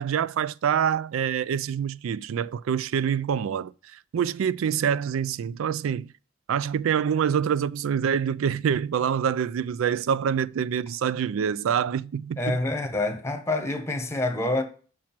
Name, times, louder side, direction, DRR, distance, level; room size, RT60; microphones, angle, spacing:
voice 1, 0.0-6.1 6.5-12.6, right 8 dB, 90° right, 0.3 m, -26 dB
voice 2, 12.4-14.6, left 2 dB, 15° left, 1.1 m, -27 dB
6.1 x 4.5 x 5.8 m
head